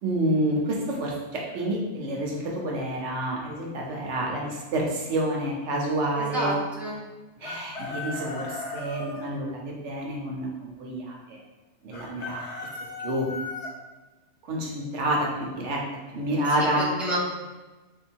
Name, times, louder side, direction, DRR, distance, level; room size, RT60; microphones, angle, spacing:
voice 1, 0.0-6.6 7.4-11.4 11.8-12.4 13.0-13.3 14.4-15.8 16.1-16.9, right 1 dB, 85° right, -1 dB, 1.2 m, -28 dB
voice 2, 6.2-7.0 16.7-17.2, right 1 dB, ahead, -7 dB, 0.9 m, -29 dB
Chicken rooster, 7.4-9.3 11.9-13.7, left 3 dB, 70° left, 1.1 m, -36 dB
3.6 x 2.7 x 4.4 m, 1.2 s
omnidirectional pair, 1.2 m